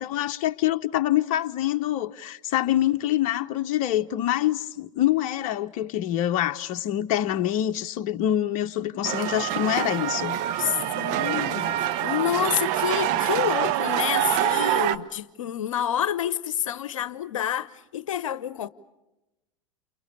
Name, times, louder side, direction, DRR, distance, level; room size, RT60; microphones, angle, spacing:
voice 1, 0.0-10.7, left 12 dB, 50° left, 1.0 m, -25 dB
sound 1, 9.0-15.0, right 12 dB, 50° right, 1.3 m, -25 dB
voice 2, 10.6-11.7 12.0-18.7, left 10 dB, 70° left, 0.9 m, -28 dB
29.5 x 28.5 x 6.7 m
figure-of-eight pair, 90°, 17 cm